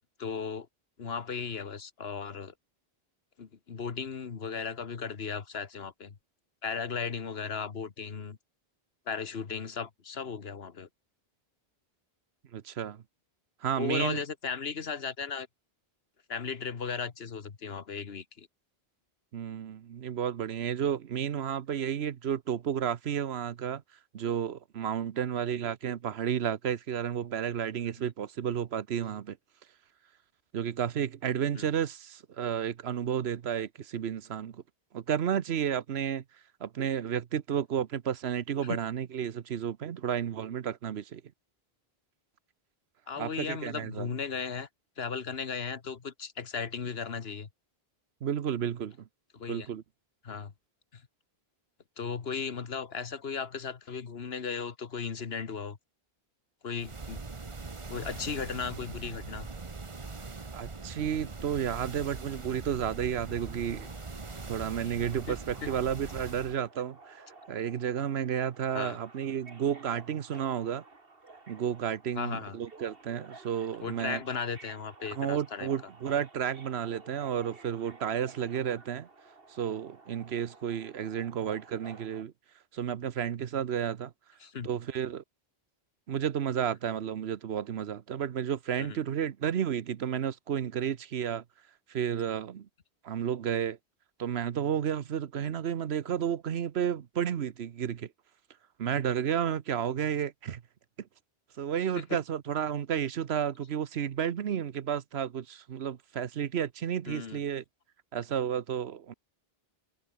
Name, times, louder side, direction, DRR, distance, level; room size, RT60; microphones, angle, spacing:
voice 1, 0.2-0.7 1.0-2.5 3.4-6.1 6.6-8.4 9.1-10.9 13.8-15.5 16.3-18.5 28.0-28.1 31.5-31.7 38.7-38.8 43.1-44.7 45.0-47.5 49.3-49.7 50.2-50.5 50.9-51.0 52.0-55.8 56.6-57.2 57.9-59.5 65.3-65.4 65.6-65.7 68.7-69.0 72.1-72.6 73.8-75.7 84.4-84.7 88.8-89.0 102.1-102.2 107.1-107.4, left 6 dB, 75° left, 1.6 m, -36 dB
voice 2, 12.5-13.0 13.6-14.2 19.3-23.8 24.1-29.4 30.5-34.6 34.9-36.2 36.6-41.2 43.2-44.1 48.2-49.1 49.5-49.8 60.5-63.9 64.5-70.8 71.5-74.2 75.1-79.1 79.5-82.3 82.7-84.1 84.6-85.2 86.1-91.4 91.9-92.7 93.0-93.8 94.2-98.1 98.8-100.6 101.6-107.6 108.1-109.1, right 9 dB, 85° right, 1.1 m, -32 dB
sound 1, 56.8-66.6, right 3 dB, 30° right, 1.2 m, -41 dB
Subway metro underground, 63.3-82.2, right 3 dB, 65° right, 2.7 m, -53 dB
omnidirectional pair, 1.0 m